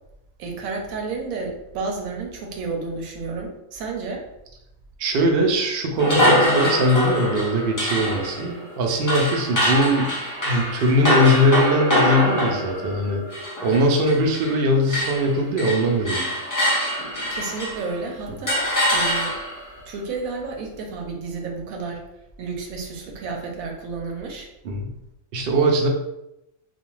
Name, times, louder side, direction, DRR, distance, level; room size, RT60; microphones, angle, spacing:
voice 1, 0.4-4.3 17.3-19.4 19.9-22.0 22.4-24.5, right 4 dB, 90° right, 2 dB, 1.0 m, -31 dB
voice 2, 5.0-10.1 10.4-13.2 13.6-16.2 24.6-24.9 25.3-25.9, equal, 65° right, 2 dB, 0.6 m, -21 dB
sound 1, 6.0-14.6 14.9-17.9 18.5-19.7, equal, 25° left, 0.5 m, -24 dB
2.5 x 2.2 x 3.0 m, 0.87 s
omnidirectional pair, 1.4 m